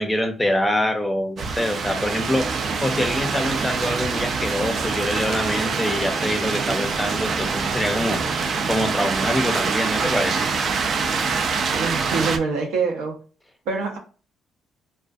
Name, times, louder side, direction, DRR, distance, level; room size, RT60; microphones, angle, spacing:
voice 1, 0.0-2.5 2.8-8.2 8.7-10.4, left 1 dB, 10° left, 5 dB, 0.5 m, -24 dB
sound 1, 1.4-12.4, right 5 dB, 55° right, 0.3 m, -25 dB
voice 2, 11.8-13.2 13.7-14.0, right 4 dB, 90° right, 2 dB, 0.6 m, -25 dB
2.4 x 2.3 x 2.3 m, 0.37 s
cardioid pair, 90°, 0 cm